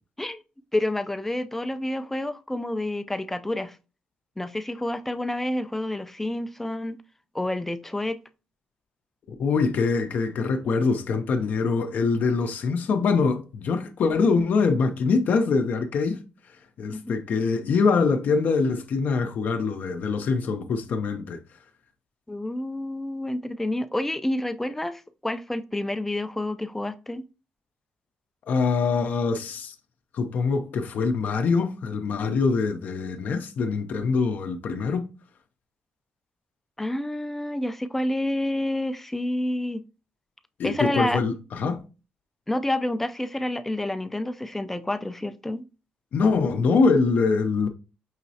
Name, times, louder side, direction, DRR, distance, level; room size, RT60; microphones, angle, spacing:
voice 1, 0.7-3.8 4.4-7.0 7.3-8.2 16.9-17.0 22.3-27.2 36.8-39.8 40.6-41.2 42.5-45.6, left 1 dB, 10° left, 0.3 m, -29 dB
voice 2, 9.4-16.2 16.8-21.4 28.5-29.7 30.1-35.1 40.6-41.8 46.1-47.7, left 4 dB, 60° left, 0.5 m, -24 dB
5.5 x 3.0 x 2.7 m
cardioid pair, 125°, 3 cm